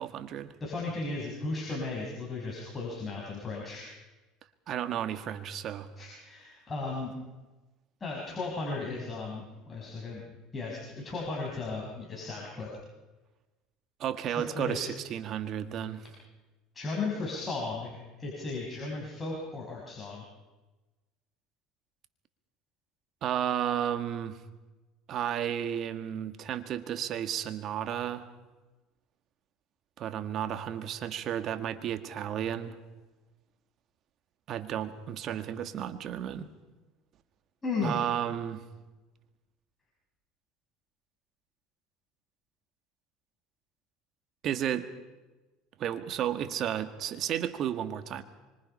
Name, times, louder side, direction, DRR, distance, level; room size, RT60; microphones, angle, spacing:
voice 1, 0.0-0.5 4.7-5.9 14.0-16.0 23.2-24.4 25.1-28.2 30.0-32.8 34.5-36.5 37.8-38.6 44.4-44.9 45.8-48.2, right 10 dB, 50° right, 10 dB, 1.8 m, -33 dB
voice 2, 0.6-3.8 6.0-7.1 8.0-10.2 10.5-12.7 14.3-14.9 16.7-20.2 37.6-38.0, left 3 dB, 25° left, -3 dB, 6.0 m, -35 dB
25.5 x 25.0 x 5.6 m, 1.2 s
supercardioid pair, 100°, 0 cm